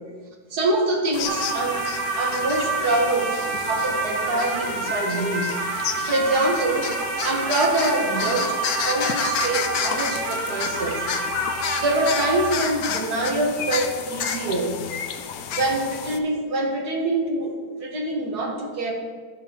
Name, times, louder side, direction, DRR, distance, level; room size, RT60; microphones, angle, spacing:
voice 1, 0.5-1.9 2.2-5.6 6.1-6.9 7.2-11.1 11.8-14.9 15.5-18.9, right 2 dB, 70° right, 0 dB, 2.0 m, -25 dB
sound 1, 1.1-16.2, left 7 dB, 70° left, 1.1 m, -30 dB
sound 2, 1.2-15.1 15.4-15.5, right 4 dB, 90° right, 1.9 m, -29 dB
16.0 x 5.5 x 3.0 m, 1.5 s
omnidirectional pair, 1.8 m